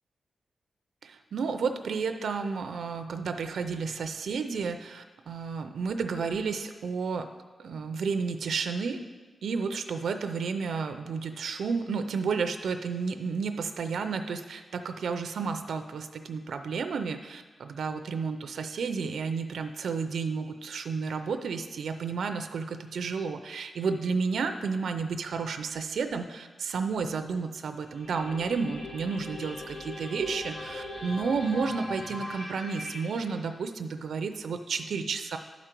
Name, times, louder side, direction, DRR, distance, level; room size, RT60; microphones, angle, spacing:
voice 1, 1.0-7.3 7.6-9.0 9.4-35.4, right 5 dB, 80° right, 8 dB, 0.5 m, -31 dB
sound 1, 27.8-33.3, left 1 dB, 85° left, 1.3 m, -40 dB
12.0 x 5.0 x 4.5 m, 1.3 s
wide cardioid pair, 170°, 0 cm